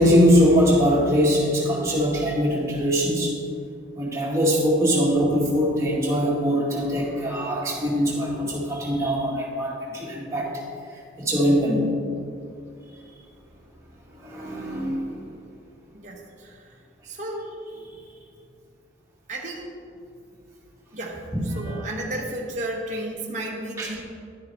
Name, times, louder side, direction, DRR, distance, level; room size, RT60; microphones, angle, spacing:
voice 1, 0.0-3.3 4.0-10.5 11.2-11.9 14.2-15.1 21.3-21.4 23.8-24.0, equal, 15° right, -6 dB, 2.1 m, -22 dB
voice 2, 15.9-16.7 17.0-17.5 19.3-19.7 20.9-21.2 21.4-24.0, right 1 dB, 40° right, -3 dB, 1.1 m, -33 dB
11.0 x 9.8 x 3.5 m, 2.3 s
head